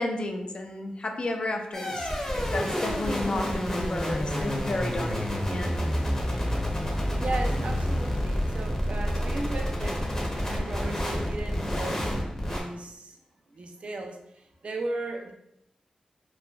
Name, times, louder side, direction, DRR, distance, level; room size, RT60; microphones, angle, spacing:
voice 1, 0.0-5.7, left 2 dB, 45° left, 4 dB, 0.4 m, -32 dB
sound 1, 1.7-12.6, equal, 25° left, 0.7 m, -29 dB
voice 2, 7.2-12.2 12.4-13.2 13.5-15.3, right 2 dB, 55° right, 3 dB, 0.4 m, -36 dB
3.1 x 2.1 x 2.3 m, 0.78 s
cardioid pair, 60°, 2 cm